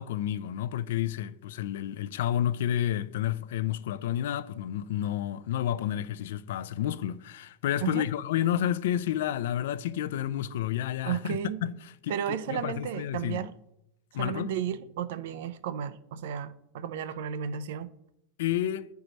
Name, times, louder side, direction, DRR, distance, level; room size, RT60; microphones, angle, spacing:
voice 1, 0.0-13.5 14.1-14.5 18.4-18.9, left 11 dB, 80° left, 0.4 m, -30 dB
voice 2, 11.0-11.6 12.1-13.5 14.1-17.9, right 9 dB, 70° right, 0.6 m, -33 dB
10.0 x 4.7 x 5.2 m
supercardioid pair, 165°, 0 cm